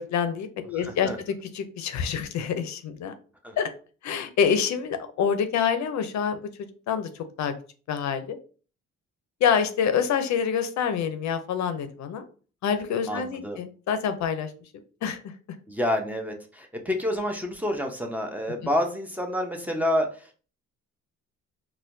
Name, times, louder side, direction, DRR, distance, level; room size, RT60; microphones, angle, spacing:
voice 1, 0.0-3.2 3.6-3.7 4.0-6.4 6.9-7.5 7.9-8.4 9.4-12.2 12.6-14.5 15.0-15.2, left 7 dB, 65° left, 9 dB, 0.5 m, -26 dB
voice 2, 0.7-1.2 3.4-3.5 13.1-13.6 15.7-20.4, left 1 dB, 5° right, 2 dB, 0.7 m, -28 dB
4.2 x 2.2 x 2.6 m, 0.38 s
cardioid pair, 90°, 30 cm